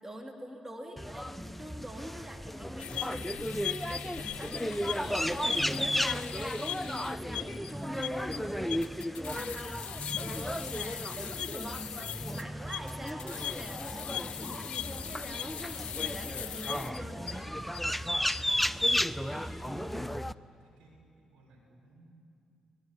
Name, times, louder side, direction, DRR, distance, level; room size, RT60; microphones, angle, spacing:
voice 1, 0.0-17.6, equal, 15° right, 2 dB, 2.9 m, -44 dB
sound 1, 1.0-20.3, equal, 5° left, 0.7 m, -34 dB
sound 2, 2.8-17.8 18.2-18.6, left 10 dB, 65° left, 0.6 m, -40 dB
voice 2, 20.5-22.0, right 2 dB, 80° right, -1 dB, 6.3 m, -61 dB
23.5 x 21.0 x 9.9 m, 2.5 s
hypercardioid pair, 45°, 2 cm